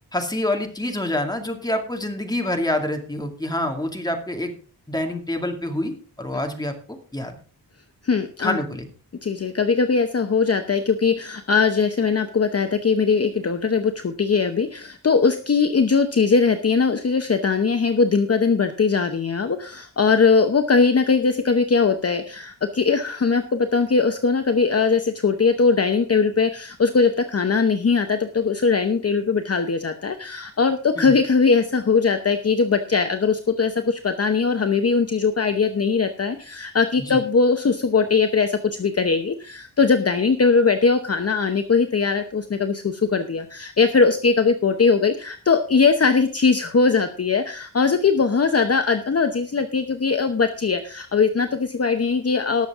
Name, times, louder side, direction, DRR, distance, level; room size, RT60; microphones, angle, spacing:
voice 1, 0.1-4.5 4.9-7.4 8.4-8.9 31.0-31.1 37.0-37.2, left 1 dB, 10° left, 4 dB, 2.2 m, -27 dB
voice 2, 8.0-8.6 9.2-52.7, left 5 dB, 40° left, 7 dB, 0.9 m, -20 dB
19.0 x 7.0 x 3.7 m, 0.40 s
wide cardioid pair, 115°, 39 cm